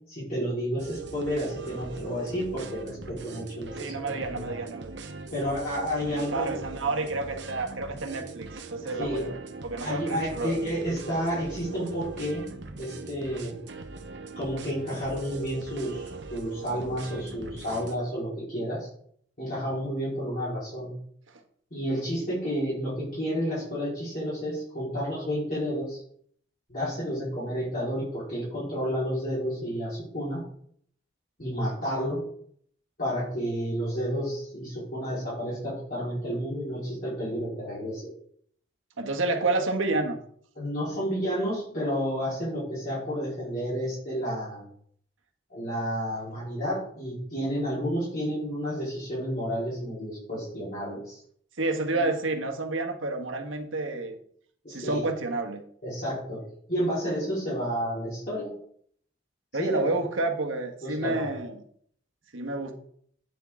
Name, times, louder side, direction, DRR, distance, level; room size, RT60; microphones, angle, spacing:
voice 1, 0.1-4.5 5.3-6.6 8.8-9.3 9.8-12.4 12.8-13.5 14.3-18.9 19.4-21.0 21.7-26.0 26.7-30.4 31.4-32.2 33.0-38.1 40.5-44.6 45.5-51.2 51.9-52.0 54.6-55.0 55.8-58.5 59.6-59.9 60.8-61.3, equal, 45° left, 4.3 m, -31 dB
sound 1, 0.8-18.0, right 3 dB, 65° right, 0.9 m, -41 dB
voice 2, 3.8-5.0 6.1-9.4 9.6-10.7 39.0-40.2 51.6-54.2 54.7-55.6 59.5-61.6 62.3-62.8, right 2 dB, 90° right, 1.4 m, -29 dB
9.4 x 7.4 x 3.7 m
head